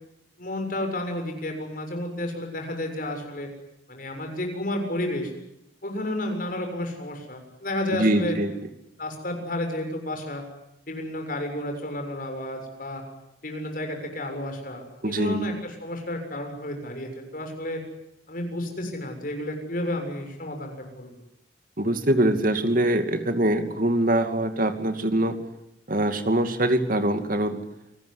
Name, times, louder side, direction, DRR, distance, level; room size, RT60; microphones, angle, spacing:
voice 1, 0.4-3.5 3.9-5.3 5.8-8.4 9.0-10.4 10.9-13.0 13.4-17.8 18.3-21.1, left 1 dB, 50° left, 4 dB, 7.1 m, -31 dB
voice 2, 7.9-8.5 15.0-15.4 21.8-25.3 25.9-27.6, right 1 dB, 50° right, 8 dB, 2.5 m, -23 dB
29.0 x 20.0 x 9.9 m, 0.84 s
head